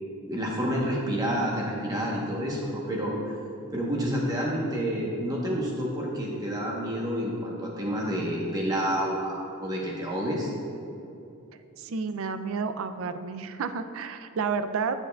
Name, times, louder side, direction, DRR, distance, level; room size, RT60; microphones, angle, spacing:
voice 1, 0.3-3.3 3.7-10.5, equal, 15° right, -3 dB, 0.9 m, -29 dB
voice 2, 11.8-15.0, right 5 dB, 65° right, 11 dB, 0.4 m, -31 dB
10.5 x 6.8 x 2.3 m, 2.7 s
head